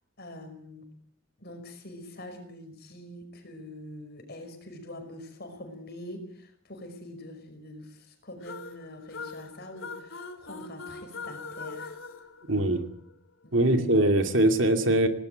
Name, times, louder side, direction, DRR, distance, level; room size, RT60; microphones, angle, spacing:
voice 1, 0.2-0.9 1.4-12.0 12.5-12.8 13.4-14.0, left 1 dB, 50° left, 6 dB, 5.4 m, -44 dB
sound 1, 8.4-13.1, left 4 dB, 75° left, 3.2 m, -42 dB
voice 2, 12.5-12.8 13.5-15.1, right 1 dB, 65° right, 6 dB, 2.6 m, -22 dB
18.5 x 18.0 x 9.1 m, 0.64 s
head